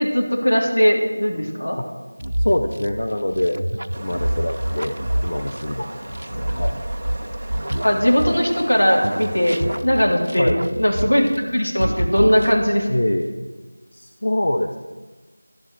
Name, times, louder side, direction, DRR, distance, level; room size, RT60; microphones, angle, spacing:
voice 1, 0.0-1.8 7.8-12.9, equal, 70° left, -1 dB, 3.6 m, -19 dB
sound 1, 2.2-8.7 9.0-11.5 11.8-12.9, right 1 dB, 80° right, 0.6 m, -27 dB
voice 2, 2.4-3.6 4.0-5.0 5.2-6.7 10.4-10.6 12.9-13.3 13.9-14.8, left 1 dB, 40° left, 4 dB, 0.7 m, -24 dB
sound 2, 3.9-9.8, right 1 dB, 10° right, 0.8 m, -37 dB
11.5 x 10.5 x 6.3 m, 1.3 s
figure-of-eight pair, 180°, 0 cm